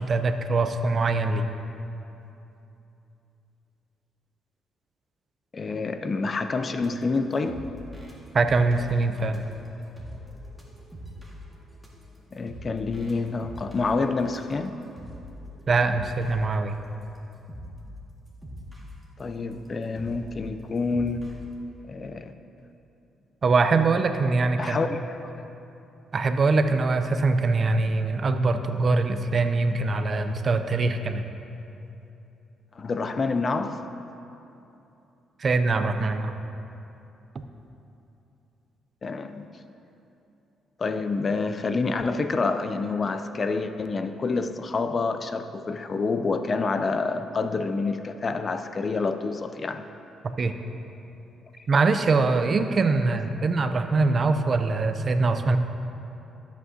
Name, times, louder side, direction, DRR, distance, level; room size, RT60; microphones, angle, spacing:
voice 1, 0.0-1.5 8.3-9.4 15.7-16.7 23.4-24.8 26.1-31.3 35.4-36.3 50.2-50.5 51.7-55.6, right 3 dB, 40° right, 8 dB, 0.5 m, -23 dB
voice 2, 5.5-7.6 12.3-14.8 19.2-21.3 21.9-22.3 24.6-25.4 32.8-33.9 39.0-39.5 40.8-49.8, left 4 dB, 35° left, 9 dB, 0.4 m, -28 dB
sound 1, 6.8-16.4 17.0-17.2 17.5-17.9 18.3-21.4, equal, ahead, 1.7 m, -43 dB
14.0 x 8.1 x 2.8 m, 2.8 s
cardioid pair, 90°, 0 cm